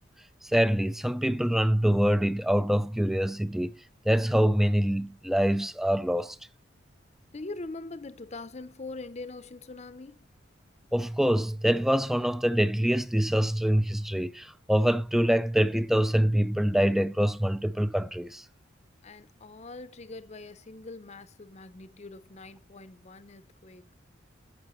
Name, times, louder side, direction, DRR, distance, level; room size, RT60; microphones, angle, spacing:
voice 1, 0.4-3.7 4.1-6.4 10.9-18.4, equal, ahead, 0.3 m, -25 dB
voice 2, 7.3-10.2 19.0-23.8, left 3 dB, 35° left, 0.6 m, -43 dB
10.5 x 7.6 x 3.1 m
head